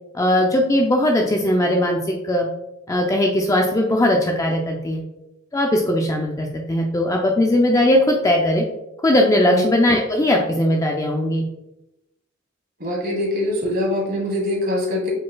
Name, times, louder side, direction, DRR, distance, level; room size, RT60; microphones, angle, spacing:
voice 1, 0.1-2.5 2.9-5.0 5.5-8.6 9.0-11.5, left 1 dB, 15° left, 1 dB, 0.4 m, -19 dB
voice 2, 12.8-15.1, left 1 dB, 50° right, -2 dB, 1.5 m, -23 dB
5.0 x 3.9 x 2.2 m, 0.89 s
head